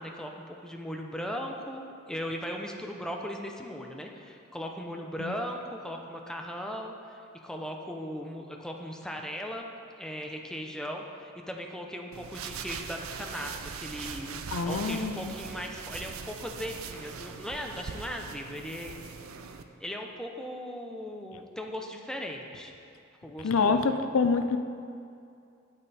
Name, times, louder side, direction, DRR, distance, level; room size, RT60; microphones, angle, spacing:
voice 1, 0.0-19.0 19.4-19.5 19.8-22.7 23.2-24.0, equal, 5° left, 2 dB, 0.7 m, -38 dB
sound 1, 12.1-19.6, right 6 dB, 85° right, 0.5 m, -41 dB
voice 2, 14.5-15.3 23.4-24.6, left 4 dB, 80° left, 8 dB, 0.5 m, -26 dB
8.9 x 8.8 x 4.2 m, 2.5 s
head